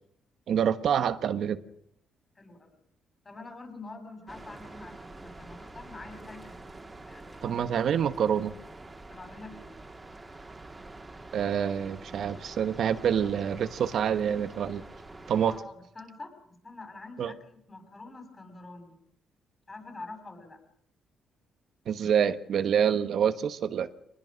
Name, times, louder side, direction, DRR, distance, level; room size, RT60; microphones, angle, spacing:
voice 1, 0.5-1.6 7.4-8.5 11.3-14.8 15.3-15.6 17.2-17.3 21.9-23.9, right 8 dB, 65° right, 1.1 m, -27 dB
voice 2, 2.4-2.8 3.2-6.6 7.0-7.5 9.1-9.8 15.5-19.0 19.7-20.6, left 3 dB, 25° left, 6.4 m, -46 dB
sound 1, 4.3-15.6, right 2 dB, 20° right, 2.3 m, -46 dB
24.0 x 20.0 x 6.4 m
cardioid pair, 90°, 0 cm